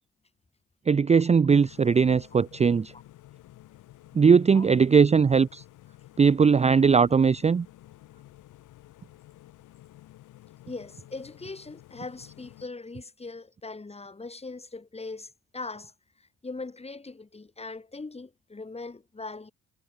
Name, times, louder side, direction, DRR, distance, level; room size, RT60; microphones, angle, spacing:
voice 1, 0.9-2.9 4.1-5.6 6.2-7.7, right 5 dB, 20° right, 0.5 m, -20 dB
sound 1, 1.6-12.7, left 15 dB, 85° left, 4.9 m, -52 dB
voice 2, 10.7-15.9 16.2-19.5, left 3 dB, 20° left, 2.7 m, -40 dB
cardioid pair, 90°, 30 cm